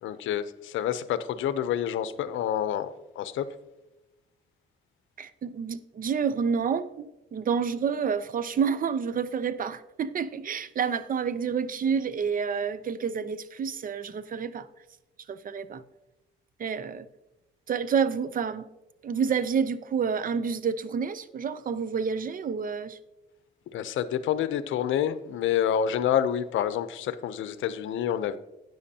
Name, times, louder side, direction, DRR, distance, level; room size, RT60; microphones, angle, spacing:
voice 1, 0.0-3.5 23.7-28.4, left 9 dB, 75° left, 0.6 m, -28 dB
voice 2, 5.2-14.7 15.3-15.8 16.6-17.1 17.7-18.7 19.0-23.0, right 6 dB, 45° right, 0.6 m, -29 dB
12.5 x 9.2 x 2.8 m
cardioid pair, 90°, 20 cm